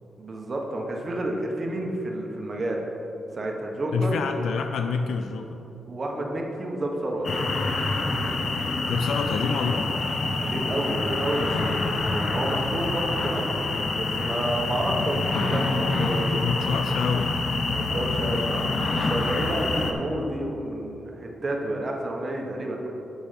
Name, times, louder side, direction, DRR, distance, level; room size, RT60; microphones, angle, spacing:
voice 1, 0.2-2.8 3.3-4.1 5.9-7.6 10.4-13.5 13.9-16.5 17.7-22.9, right 1 dB, 30° right, 0 dB, 1.3 m, -30 dB
voice 2, 3.9-5.6 8.9-9.9 16.4-17.4, left 5 dB, 85° left, 6 dB, 0.4 m, -27 dB
sound 1, 7.2-19.9, left 3 dB, 45° left, 0.8 m, -26 dB
8.7 x 6.3 x 5.7 m, 3.0 s
wide cardioid pair, 140°, 0 cm